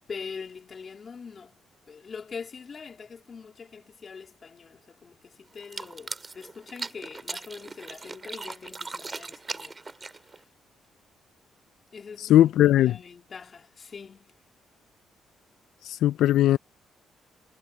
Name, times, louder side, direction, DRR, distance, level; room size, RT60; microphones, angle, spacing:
voice 1, 0.1-1.6 1.9-10.5 11.9-14.4, left 5 dB, 40° left, 3.2 m, -43 dB
sound 1, 5.6-10.4, right 3 dB, 25° right, 3.2 m, -39 dB
voice 2, 12.2-13.0 15.8-16.6, left 13 dB, 80° left, 0.3 m, -19 dB
cardioid pair, 90°, 0 cm